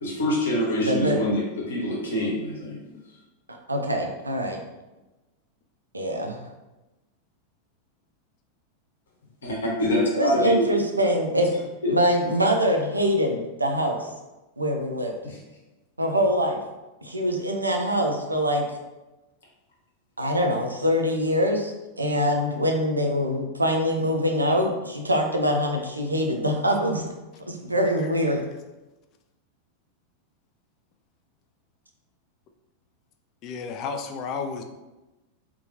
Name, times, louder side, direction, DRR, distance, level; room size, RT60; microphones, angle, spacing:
voice 1, 0.0-2.8 9.4-10.6 11.8-11.9 15.2-15.4, left 1 dB, 65° left, -4 dB, 0.8 m, -25 dB
voice 2, 0.8-1.2 3.7-4.6 5.9-6.4 10.1-11.5 11.9-14.1 14.6-15.1 16.0-16.6 17.0-18.8 20.2-27.0 27.5-28.4, equal, 80° right, 3 dB, 0.4 m, -24 dB
voice 3, 33.4-34.6, left 5 dB, 40° left, 5 dB, 0.3 m, -32 dB
2.7 x 2.2 x 2.7 m, 1.1 s
figure-of-eight pair, 90°, 0 cm